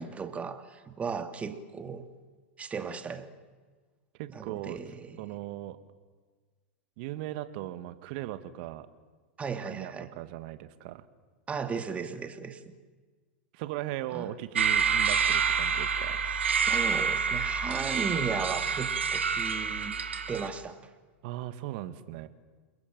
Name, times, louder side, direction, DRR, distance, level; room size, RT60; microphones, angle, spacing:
voice 1, 0.0-2.0 2.6-3.3 4.3-5.2 9.4-10.1 11.5-12.7 14.1-14.3 16.5-20.0 20.3-20.9, right 5 dB, 20° right, 8 dB, 2.6 m, -36 dB
voice 2, 4.2-4.8 5.2-5.8 7.0-8.9 9.6-11.0 13.5-16.2 21.2-22.3, right 14 dB, 55° right, 11 dB, 2.0 m, -38 dB
sound 1, 14.5-20.5, right 6 dB, 90° right, 1.8 m, -28 dB
29.5 x 22.0 x 7.7 m, 1.4 s
hypercardioid pair, 100°, 6 cm